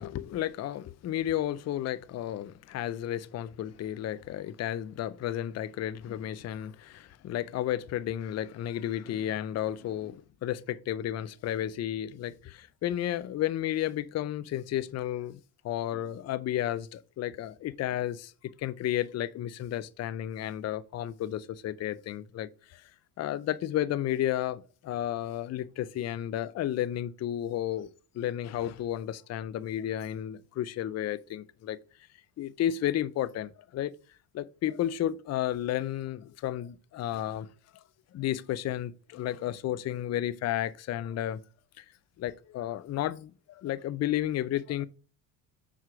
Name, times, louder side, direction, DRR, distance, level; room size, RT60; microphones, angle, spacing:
voice 1, 0.0-15.4 15.6-18.3 18.6-22.9 23.2-31.8 32.4-33.9 34.3-37.5 38.1-41.4 41.8-41.9 42.2-44.9, left 12 dB, 35° left, 0.5 m, -32 dB
5.6 x 4.9 x 4.6 m
hypercardioid pair, 70°, 49 cm